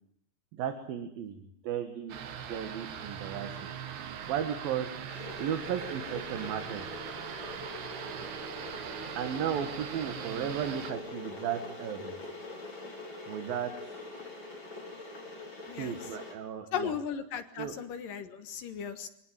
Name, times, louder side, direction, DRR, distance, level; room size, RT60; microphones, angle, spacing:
voice 1, 0.5-2.2 2.5-3.5 4.2-4.9 5.4-6.9 9.2-12.2 13.3-14.0 15.8-16.9 17.6-17.8, right 8 dB, 70° right, 8 dB, 3.4 m, -35 dB
sound 1, 2.1-10.9, right 8 dB, 85° right, 4.0 m, -41 dB
Water / Boiling, 5.1-16.3, left 2 dB, 30° left, 5.4 m, -44 dB
voice 2, 15.7-16.0 16.7-19.1, left 8 dB, 65° left, 9 dB, 3.0 m, -36 dB
25.0 x 18.0 x 9.1 m, 0.74 s
omnidirectional pair, 4.5 m